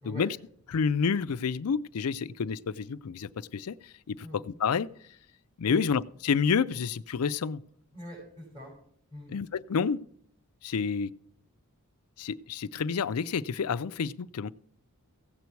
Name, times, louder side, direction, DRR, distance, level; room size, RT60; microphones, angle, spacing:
voice 1, 0.0-0.4 0.7-4.9 5.6-7.6 9.3-10.0 10.6-11.1 12.2-14.5, left 6 dB, 85° left, 15 dB, 0.5 m, -29 dB
voice 2, 7.9-8.7 9.1-9.3, left 2 dB, 25° right, -7 dB, 5.5 m, -42 dB
15.5 x 8.2 x 4.6 m, 0.66 s
head